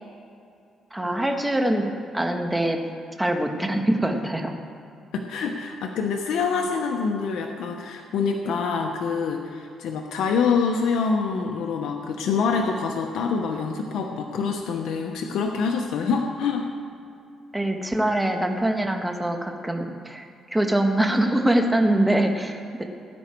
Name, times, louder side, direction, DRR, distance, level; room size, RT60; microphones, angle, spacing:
voice 1, 0.9-2.8 3.2-4.5 17.5-20.2 20.5-22.8, right 1 dB, 10° right, 4 dB, 1.6 m, -23 dB
voice 2, 5.1-16.7, left 5 dB, 80° left, 2 dB, 1.0 m, -26 dB
18.5 x 9.6 x 4.6 m, 2.6 s
cardioid pair, 90°, 0 cm